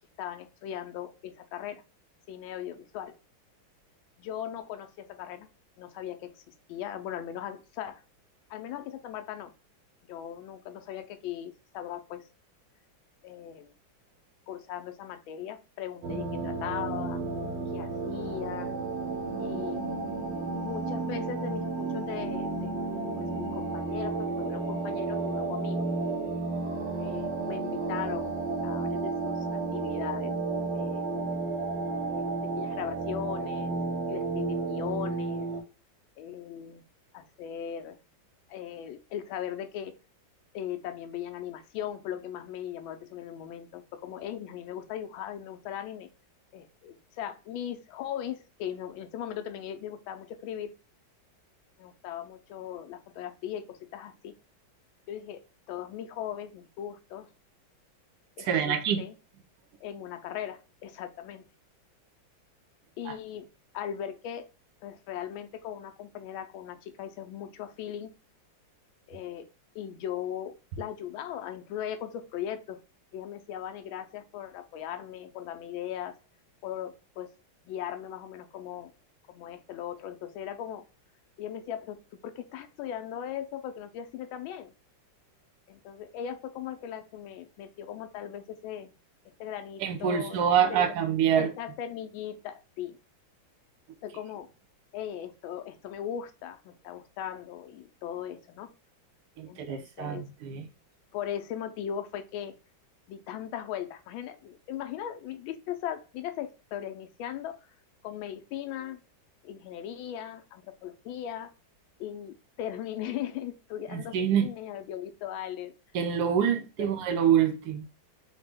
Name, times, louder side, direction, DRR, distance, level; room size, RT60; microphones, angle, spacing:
voice 1, 0.2-1.8 2.3-3.2 4.2-5.5 5.8-8.0 8.5-9.5 10.1-12.3 13.2-13.7 14.5-17.2 17.7-18.8 19.4-19.8 20.6-22.8 23.2-25.9 27.0-28.4 28.6-30.4 30.7-31.1 32.1-33.8 34.1-35.5 36.2-36.8 37.1-38.0 38.5-40.0 40.5-46.1 46.5-50.7 51.8-54.3 55.1-57.3 58.4-59.2 59.8-61.4 63.0-63.5 63.7-64.5 64.8-68.1 69.1-69.5 69.7-72.8 73.1-76.2 76.6-77.3 77.7-78.9 79.3-80.8 81.4-84.7 85.7-88.9 89.4-90.9 91.3-93.0 94.0-94.5 94.9-98.7 99.5-100.3 101.1-102.5 103.1-107.6 108.0-109.0 109.4-111.5 112.0-115.7 116.5-117.0, left 10 dB, 85° left, 1.4 m, -38 dB
sound 1, 16.0-35.6, right 3 dB, 85° right, 1.5 m, -32 dB
voice 2, 58.4-59.0 63.1-63.2 89.8-91.5 99.4-100.6 113.9-114.5 115.9-117.8, right 8 dB, 70° right, 1.0 m, -26 dB
4.1 x 2.1 x 3.4 m
omnidirectional pair, 2.1 m